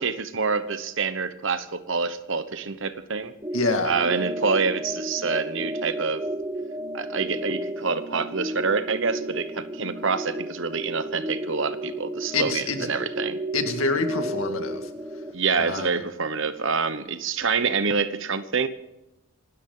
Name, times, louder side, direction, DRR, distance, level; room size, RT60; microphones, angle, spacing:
voice 1, 0.0-3.3 3.8-6.2 6.9-13.4 15.3-18.7, right 5 dB, 60° right, 1.1 m, -26 dB
sound 1, 3.4-15.3, right 1 dB, 15° right, 1.1 m, -33 dB
voice 2, 3.5-4.0 12.3-12.9 13.5-14.9 15.5-16.0, left 3 dB, 65° left, 2.2 m, -26 dB
27.0 x 12.5 x 3.9 m
head